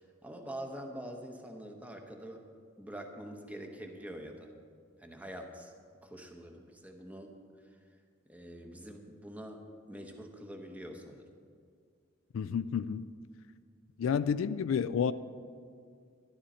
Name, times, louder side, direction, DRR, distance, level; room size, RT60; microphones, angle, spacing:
voice 1, 0.0-2.4 2.8-4.5 5.0-5.7 6.0-7.3 8.3-11.2, right 1 dB, 5° right, 4 dB, 0.9 m, -45 dB
voice 2, 12.3-13.1 14.0-15.1, left 7 dB, 75° left, 14 dB, 0.3 m, -30 dB
12.0 x 11.0 x 4.2 m, 2.2 s
head